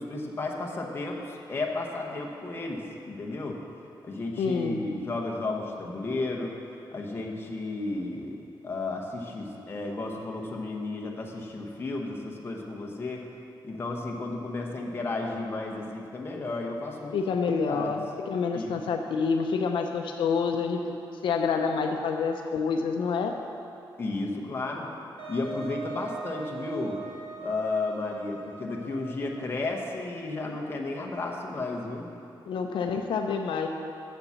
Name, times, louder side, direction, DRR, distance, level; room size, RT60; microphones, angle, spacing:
voice 1, 0.0-3.6 4.0-6.6 6.9-13.3 13.6-17.3 17.7-18.0 18.5-18.8 24.0-24.9 25.3-27.0 27.4-32.1, left 2 dB, 25° left, 0 dB, 0.8 m, -33 dB
voice 2, 4.4-4.8 17.1-20.9 21.2-23.3 32.5-33.7, left 5 dB, 75° left, 4 dB, 0.5 m, -27 dB
Wind instrument woodwind instrument, 25.2-29.5, right 4 dB, 80° right, 1.3 m, -41 dB
7.1 x 6.8 x 6.9 m, 2.7 s
wide cardioid pair, 180°, 8 cm